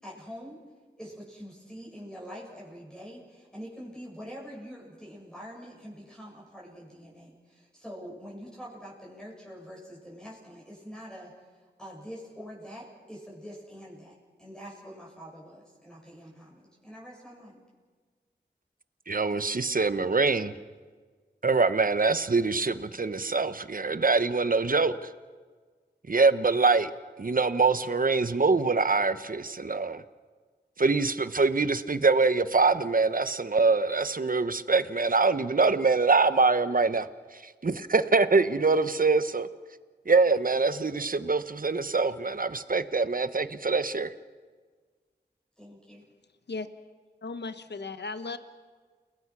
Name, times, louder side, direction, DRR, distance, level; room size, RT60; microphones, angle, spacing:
voice 1, 0.0-0.6 1.0-11.3 11.8-17.6 45.6-46.0, equal, 5° left, -5 dB, 7.2 m, -45 dB
voice 2, 19.1-20.5 21.4-25.0 26.1-26.9 27.2-30.0 30.8-37.1 37.6-39.5 40.1-44.1, right 4 dB, 50° right, 12 dB, 1.1 m, -24 dB
voice 3, 47.2-48.4, left 4 dB, 70° left, 10 dB, 1.1 m, -36 dB
30.0 x 19.5 x 6.2 m, 1.5 s
wide cardioid pair, 60°, 18 cm